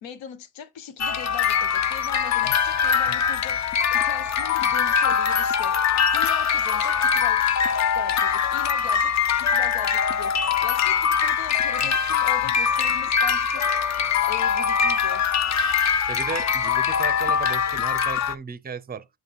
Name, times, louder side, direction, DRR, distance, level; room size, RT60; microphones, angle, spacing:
voice 1, 0.0-7.4 7.9-9.1 9.4-13.6 14.3-15.3, left 7 dB, 85° left, 1.0 m, -40 dB
sound 1, 1.0-18.3, left 7 dB, 40° left, 0.5 m, -22 dB
voice 2, 16.1-19.1, right 6 dB, 20° right, 0.5 m, -35 dB
7.1 x 3.2 x 4.5 m
cardioid pair, 145°, 45 cm